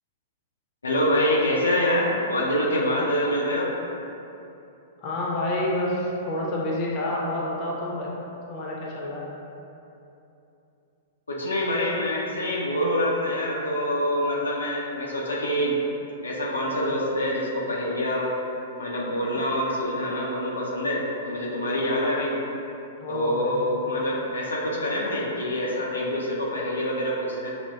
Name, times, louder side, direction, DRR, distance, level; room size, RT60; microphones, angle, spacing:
voice 1, 0.8-3.7 11.3-15.8 16.2-18.3 18.8-22.3 23.1-27.5, left 1 dB, 80° left, -5 dB, 0.5 m, -25 dB
voice 2, 5.0-8.1 8.5-9.2 23.0-23.6, left 1 dB, 40° left, -4 dB, 0.7 m, -28 dB
6.0 x 2.1 x 2.3 m, 2.8 s
figure-of-eight pair, 105°, 0 cm